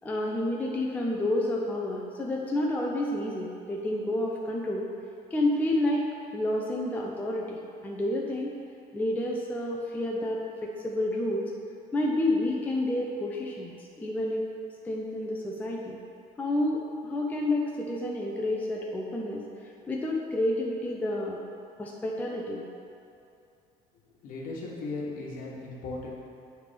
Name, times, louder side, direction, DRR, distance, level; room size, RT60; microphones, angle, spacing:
voice 1, 0.0-4.9 5.3-6.0 6.3-8.5 8.9-11.5 11.9-14.4 14.8-16.0 16.4-21.4 21.8-22.6, left 1 dB, 10° left, -2 dB, 0.4 m, -29 dB
voice 2, 24.2-26.1, left 3 dB, 60° left, -3 dB, 1.3 m, -37 dB
8.0 x 3.4 x 5.0 m, 2.7 s
cardioid pair, 165°, 16 cm